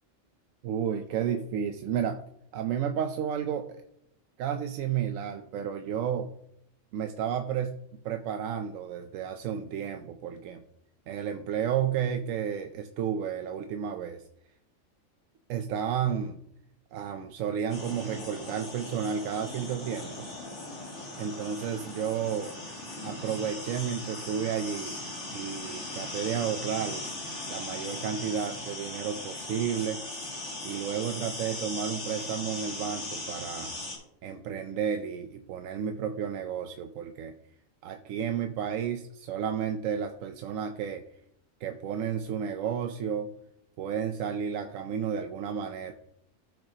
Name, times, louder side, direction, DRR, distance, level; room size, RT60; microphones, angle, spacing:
voice 1, 0.6-2.2 2.5-3.8 4.4-6.3 6.9-7.8 8.0-10.6 11.1-14.2 15.5-16.4 16.9-20.3 21.2-22.5 23.0-25.0 25.3-27.0 27.5-30.0 30.6-33.7 34.2-37.3 37.8-41.0 41.6-43.3 43.8-45.9, right 8 dB, 90° right, 7 dB, 1.0 m, -32 dB
sound 1, 17.7-34.0, left 2 dB, 65° left, 2.7 m, -39 dB
13.5 x 5.9 x 2.8 m, 0.75 s
omnidirectional pair, 1.3 m